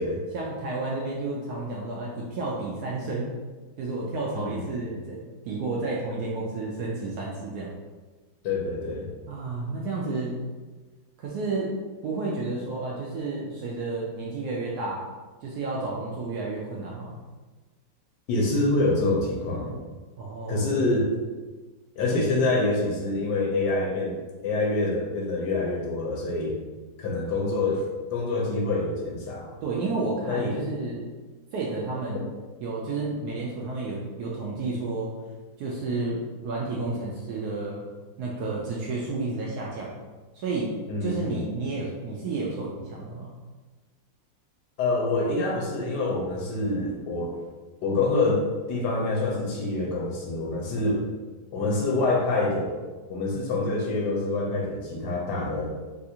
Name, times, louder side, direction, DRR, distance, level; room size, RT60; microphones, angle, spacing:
voice 1, 0.3-3.3 3.8-7.7 9.3-10.4 11.2-11.8 12.0-15.1 15.4-17.1 20.2-20.8 29.6-31.1 31.5-32.2 32.6-35.1 35.6-37.8 38.2-40.0 40.3-40.7 41.0-43.3, right 3 dB, 70° right, -4 dB, 0.9 m, -31 dB
voice 2, 4.3-4.7 8.4-9.1 18.3-19.8 20.5-21.1 22.0-24.2 24.4-26.6 27.0-27.8 28.1-29.6 30.3-30.5 40.9-41.4 44.8-47.4 47.8-51.0 51.5-52.8 53.1-55.7, left 2 dB, 70° left, -2 dB, 1.2 m, -26 dB
3.6 x 2.5 x 2.7 m, 1.3 s
omnidirectional pair, 2.0 m